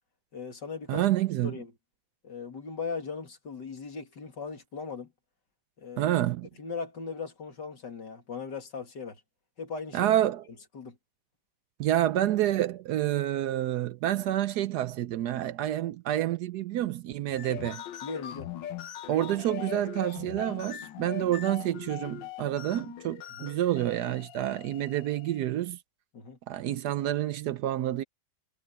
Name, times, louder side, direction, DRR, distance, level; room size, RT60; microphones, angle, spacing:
voice 1, 0.3-1.1 1.4-1.7 2.2-5.1 5.8-6.1 6.6-9.2 9.6-10.1 10.7-11.0 17.5-17.6 18.0-18.5 23.4-23.5 26.1-26.4, left 5 dB, 70° left, 3.3 m, -38 dB
voice 2, 0.9-1.5 6.0-6.5 9.9-10.4 11.8-17.8 19.1-25.8 26.5-28.0, right 13 dB, 70° right, 1.1 m, -28 dB
sound 1, 17.3-25.5, left 11 dB, 85° left, 1.5 m, -41 dB
omnidirectional pair, 1.9 m